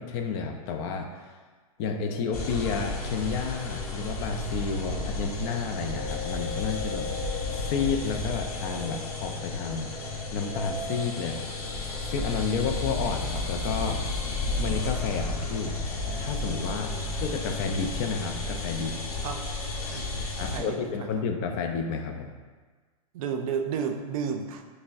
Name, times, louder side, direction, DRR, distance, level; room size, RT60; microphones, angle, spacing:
voice 1, 0.0-1.3 1.8-9.9 10.3-11.5 12.0-14.0 14.3-15.7 16.2-16.9 17.2-19.0 20.4-22.4, left 5 dB, 40° left, 4 dB, 0.4 m, -31 dB
sound 1, 1.8-20.9, left 2 dB, 10° right, 1.0 m, -43 dB
sound 2, 2.3-20.6, left 2 dB, 70° left, 0.8 m, -33 dB
voice 2, 19.9-21.2 23.1-24.6, right 6 dB, 65° right, 5 dB, 0.4 m, -33 dB
5.6 x 2.1 x 2.5 m, 1.4 s
hypercardioid pair, 130°, 19 cm